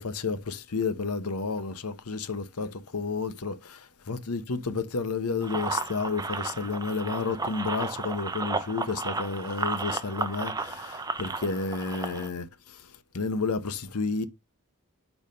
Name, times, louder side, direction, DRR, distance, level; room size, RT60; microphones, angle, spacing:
voice 1, 0.0-12.8 13.1-14.3, left 4 dB, 85° left, 0.9 m, -31 dB
sound 1, 5.4-12.3, right 3 dB, 15° right, 0.6 m, -33 dB
5.2 x 4.8 x 5.3 m
head